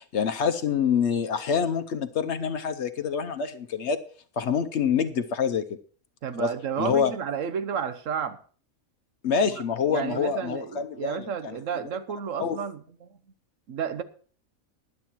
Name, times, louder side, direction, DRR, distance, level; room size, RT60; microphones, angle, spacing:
voice 1, 0.0-4.0 4.4-5.6 6.4-6.5 6.8-7.1 9.2-11.6 12.4-12.6, left 6 dB, 60° left, 10 dB, 0.9 m, -26 dB
voice 2, 6.2-8.4 9.9-13.1 13.7-14.0, right 7 dB, 70° right, 11 dB, 1.2 m, -31 dB
19.5 x 11.0 x 3.0 m, 0.43 s
omnidirectional pair, 1.4 m